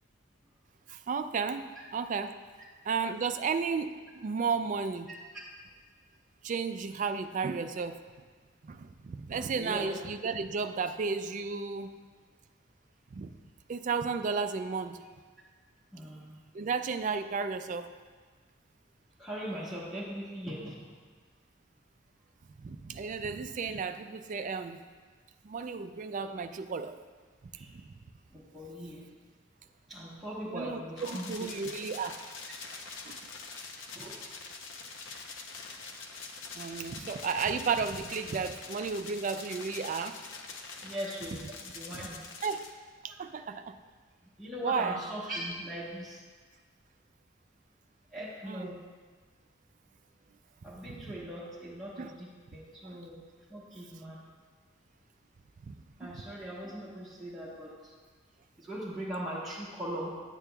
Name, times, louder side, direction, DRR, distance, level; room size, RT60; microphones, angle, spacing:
voice 1, 0.9-2.3 2.8-5.1 6.4-8.0 8.6-11.9 13.1-13.3 13.7-15.0 16.5-17.9 22.6-24.8 25.4-27.0 27.7-27.8 30.5-32.2 33.0-33.3 36.5-40.2 42.4-42.7 43.0-43.8 44.6-45.0 48.5-48.8 50.9-51.1 52.0-52.1 52.8-53.0 55.6-56.1, right 5 dB, 40° right, 8 dB, 0.3 m, -33 dB
voice 2, 9.6-9.9 15.9-16.4 19.2-20.9 27.5-27.7 28.3-29.0 29.9-31.5 33.9-34.1 40.8-42.3 44.4-46.2 48.1-48.8 50.6-53.2 53.5-54.2 56.0-57.9 58.6-60.1, equal, ahead, -10 dB, 1.1 m, -40 dB
sound 1, 31.0-42.7, left 4 dB, 70° left, 0.7 m, -44 dB
9.7 x 8.3 x 2.3 m, 1.5 s
head